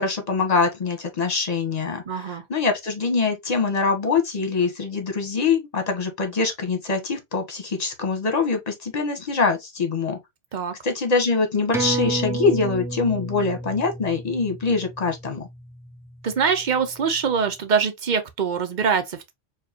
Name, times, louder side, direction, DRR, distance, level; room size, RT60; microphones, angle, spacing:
voice 1, 0.0-10.2 10.8-15.5, left 4 dB, 40° left, 1.1 m, -24 dB
voice 2, 2.1-2.4 10.5-10.7 16.2-19.3, right 6 dB, 50° right, 0.8 m, -23 dB
sound 1, 11.7-16.7 17.0-17.1, right 2 dB, 5° right, 0.5 m, -31 dB
4.6 x 2.4 x 2.8 m
omnidirectional pair, 1.1 m